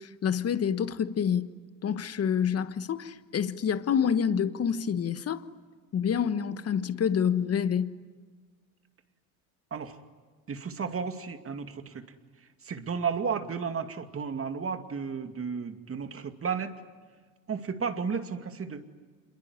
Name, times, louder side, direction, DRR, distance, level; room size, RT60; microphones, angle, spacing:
voice 1, 0.0-1.5 1.8-5.5 5.9-8.0, left 7 dB, 35° left, 1.4 m, -27 dB
voice 2, 10.5-12.1 12.6-16.7 17.5-18.8, right 6 dB, 30° right, 2.4 m, -33 dB
27.0 x 22.5 x 9.7 m
supercardioid pair, 80°, 42 cm